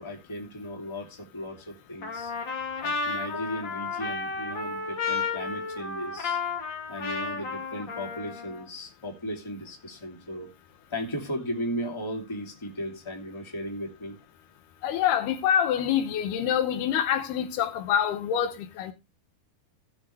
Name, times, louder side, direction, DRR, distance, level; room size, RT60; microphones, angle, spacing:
voice 1, 0.0-2.3 2.8-6.4 6.9-10.5 10.9-14.2, equal, 10° left, 2.4 m, -36 dB
Trumpet, 2.0-8.6, left 4 dB, 40° left, 1.8 m, -32 dB
voice 2, 14.8-18.9, left 9 dB, 80° left, 3.1 m, -26 dB
18.5 x 6.2 x 3.3 m
omnidirectional pair, 4.6 m